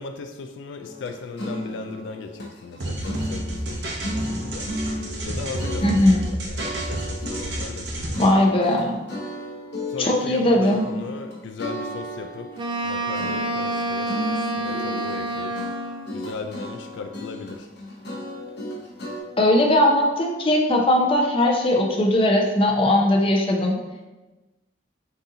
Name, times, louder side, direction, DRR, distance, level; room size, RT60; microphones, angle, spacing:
voice 1, 0.0-4.7 5.2-8.6 8.9-9.0 9.9-15.6 16.1-17.7, left 4 dB, 80° left, 6 dB, 0.3 m, -37 dB
sound 1, 0.8-3.8 4.0-6.3 6.6-19.2, equal, 65° left, 0.8 m, -34 dB
sound 2, 2.8-8.3, right 1 dB, 65° right, 0.7 m, -30 dB
voice 2, 5.8-6.2 8.2-9.0 10.0-10.8 19.4-23.8, left 1 dB, 30° left, 0 dB, 0.6 m, -19 dB
Wind instrument woodwind instrument, 12.6-16.1, right 2 dB, 25° right, 0.3 m, -28 dB
4.0 x 2.7 x 3.7 m, 1.1 s
head